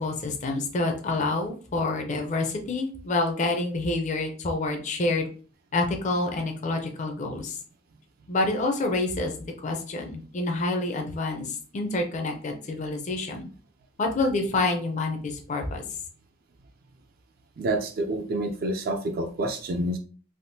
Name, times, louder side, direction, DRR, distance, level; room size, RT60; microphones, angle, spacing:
voice 1, 0.0-5.3 5.7-7.6 8.3-9.3 9.6-13.5 14.0-15.8, left 2 dB, 35° left, 3 dB, 0.5 m, -27 dB
voice 2, 17.6-20.0, right 1 dB, 50° right, 5 dB, 0.3 m, -28 dB
3.5 x 2.4 x 2.6 m, 0.41 s
head